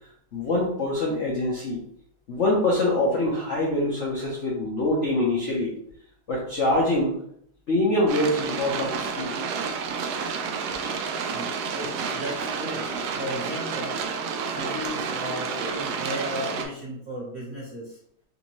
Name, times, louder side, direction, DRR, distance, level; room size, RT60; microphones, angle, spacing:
voice 1, 0.3-1.8 2.3-5.7 6.3-7.1 7.7-9.3, left 1 dB, 55° left, -5 dB, 0.8 m, -24 dB
sound 1, 8.1-16.7, right 5 dB, 75° right, 0.9 m, -30 dB
voice 2, 11.3-14.0 14.4-18.0, equal, 40° right, -5 dB, 1.2 m, -35 dB
4.1 x 2.7 x 3.1 m, 0.68 s
omnidirectional pair, 2.2 m